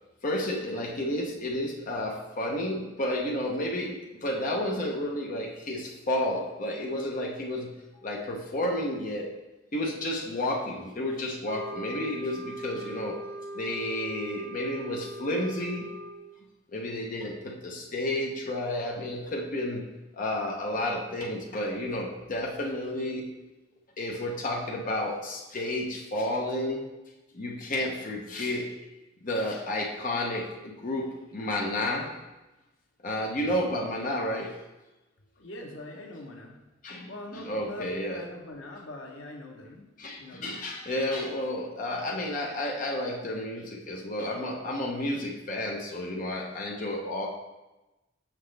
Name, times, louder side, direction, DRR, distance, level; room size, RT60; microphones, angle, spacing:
voice 1, 0.2-7.7 8.0-9.3 9.7-13.2 13.5-15.9 16.7-19.8 20.1-23.3 24.0-26.9 27.3-28.7 29.2-32.1 33.0-34.5 36.8-38.2 40.0-47.3, left 1 dB, 45° left, -1 dB, 0.8 m, -31 dB
sound 1, 11.4-16.3, right 1 dB, 55° right, 0.7 m, -40 dB
voice 2, 35.4-36.6 37.1-39.9 40.2-40.6, left 1 dB, 85° left, 1 dB, 1.0 m, -42 dB
6.1 x 5.9 x 3.3 m, 1.0 s
head